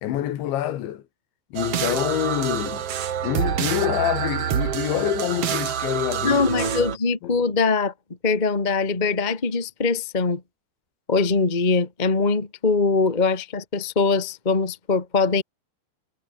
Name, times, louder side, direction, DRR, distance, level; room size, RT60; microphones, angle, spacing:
voice 1, 0.0-1.0 1.5-2.9 3.2-6.9 7.2-7.4, left 12 dB, 80° left, 4.1 m, -26 dB
sound 1, 1.5-7.0, right 9 dB, 70° right, 1.4 m, -27 dB
voice 2, 6.2-7.9 8.2-10.4 11.1-15.4, left 4 dB, 25° left, 1.0 m, -22 dB
omnidirectional pair, 5.2 m